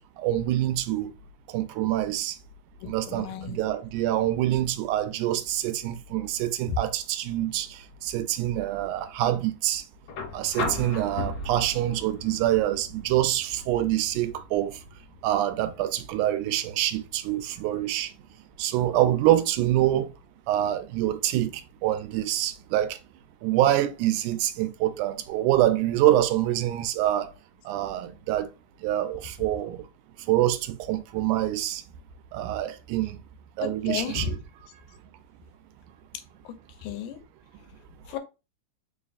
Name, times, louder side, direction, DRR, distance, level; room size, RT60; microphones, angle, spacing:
voice 1, 0.2-1.1 1.5-2.4 2.8-9.8 10.3-14.8 15.2-18.1 18.6-20.1 20.5-21.5 21.8-23.0 23.4-27.3 27.7-28.5 28.8-29.8 30.3-31.8 32.3-33.1 33.6-34.4, right 13 dB, 85° right, 2.0 m, -25 dB
voice 2, 2.8-3.6 33.6-34.3 36.5-36.6 36.8-37.2 38.1-38.2, left 8 dB, 85° left, 2.1 m, -33 dB
sound 1, 10.1-18.1 19.5-19.6, left 3 dB, 60° left, 1.7 m, -38 dB
4.8 x 3.2 x 2.4 m
omnidirectional pair, 3.5 m